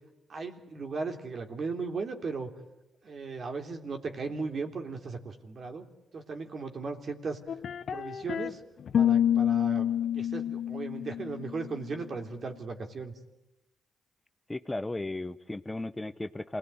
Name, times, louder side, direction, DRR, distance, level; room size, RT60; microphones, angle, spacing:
voice 1, 0.3-2.5 3.0-5.9 6.1-7.4 7.9-8.6 9.0-9.9 10.1-13.1, right 4 dB, 55° right, 4 dB, 3.4 m, -36 dB
sound 1, 7.5-8.5 8.9-11.8, left 10 dB, 65° left, 1.0 m, -28 dB
voice 2, 14.5-16.6, left 2 dB, 20° left, 12 dB, 1.0 m, -35 dB
28.0 x 18.5 x 9.4 m, 0.95 s
supercardioid pair, 50°, 0 cm